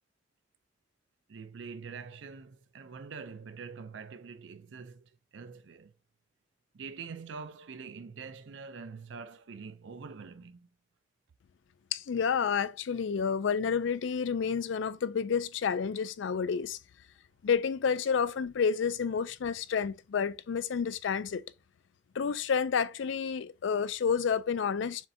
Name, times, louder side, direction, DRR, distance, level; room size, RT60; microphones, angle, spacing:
voice 1, 1.3-5.9 6.7-10.7, right 5 dB, 70° right, 0.5 m, -45 dB
voice 2, 11.9-16.8 17.4-21.4 22.1-25.0, left 6 dB, 70° left, 0.4 m, -30 dB
7.1 x 2.7 x 2.6 m
head